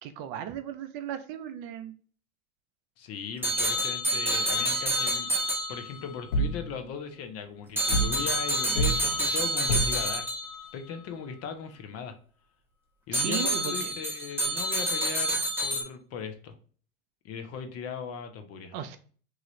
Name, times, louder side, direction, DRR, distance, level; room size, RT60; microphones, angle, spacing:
voice 1, 0.0-1.9 13.1-13.9 18.7-19.0, right 10 dB, 50° right, 9 dB, 0.5 m, -36 dB
voice 2, 3.0-5.3 5.7-10.3 10.7-12.1 13.1-16.6 17.2-18.8, left 6 dB, 40° left, 7 dB, 0.6 m, -38 dB
sound 1, 3.4-6.2 7.8-10.7 13.1-15.8, right 1 dB, 5° right, 0.8 m, -28 dB
sound 2, 6.3-6.6 7.9-8.2 8.8-9.0 9.7-10.0, right 1 dB, 75° left, 0.7 m, -26 dB
3.1 x 2.4 x 2.9 m, 0.43 s
hypercardioid pair, 90°, 40 cm